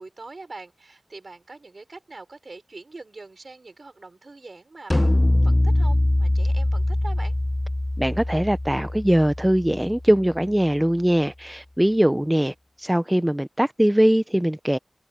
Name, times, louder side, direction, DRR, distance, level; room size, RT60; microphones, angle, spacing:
voice 1, 0.0-7.4, right 3 dB, 65° right, 5.3 m, -43 dB
sound 1, 4.9-10.3, left 1 dB, 25° left, 0.7 m, -23 dB
voice 2, 8.0-14.8, right 1 dB, 10° right, 0.7 m, -21 dB
wide cardioid pair, 55°, 0 cm